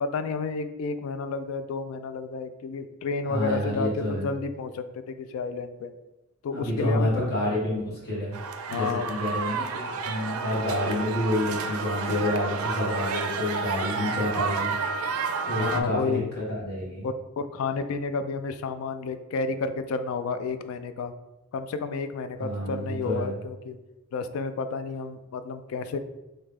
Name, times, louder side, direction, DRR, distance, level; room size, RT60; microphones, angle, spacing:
voice 1, 0.0-5.9 6.4-7.1 8.7-9.1 13.9-14.3 15.6-16.4 17.0-21.1 21.5-23.8 24.1-26.0, left 4 dB, 75° left, 10 dB, 0.3 m, -31 dB
voice 2, 3.3-4.3 6.5-8.4 8.7-14.7 15.4-17.1 22.4-23.4, left 1 dB, 45° left, -6 dB, 1.4 m, -29 dB
sound 1, 8.3-15.8, right 5 dB, 90° right, 0.4 m, -30 dB
3.2 x 2.8 x 3.5 m, 1.0 s
head